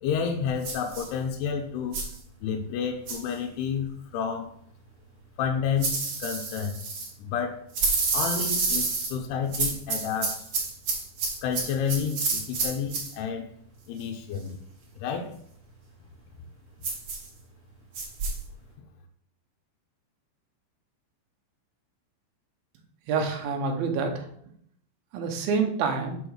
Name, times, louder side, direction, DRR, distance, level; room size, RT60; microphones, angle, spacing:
voice 1, 0.0-2.0 2.4-4.5 5.4-6.8 7.2-7.6 8.1-10.4 11.4-13.5 13.9-14.6 15.0-15.3, left 7 dB, 75° left, 1 dB, 2.7 m, -30 dB
sound 1, 0.6-1.1 1.9-2.2 3.1-3.3 5.8-7.1 7.7-9.1 9.5-13.1 16.8-17.3 17.9-18.4, right 3 dB, 50° right, 1.7 m, -29 dB
voice 2, 23.1-24.2 25.1-26.2, right 5 dB, 70° right, 3 dB, 2.5 m, -27 dB
6.9 x 4.4 x 6.3 m, 0.65 s
omnidirectional pair, 5.0 m